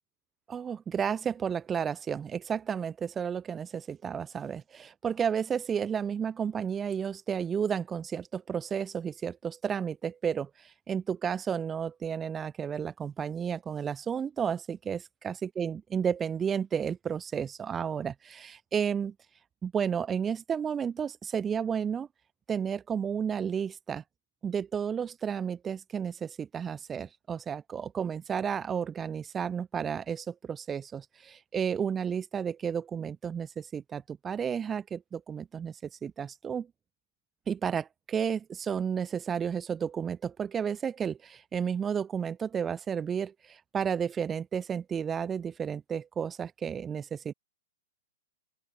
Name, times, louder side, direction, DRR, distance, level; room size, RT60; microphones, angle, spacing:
voice 1, 0.5-19.1 19.6-22.1 22.5-24.0 24.4-36.7 37.5-47.3, right 7 dB, 10° right, 7.7 m, -32 dB
open air
hypercardioid pair, 165°, 0 cm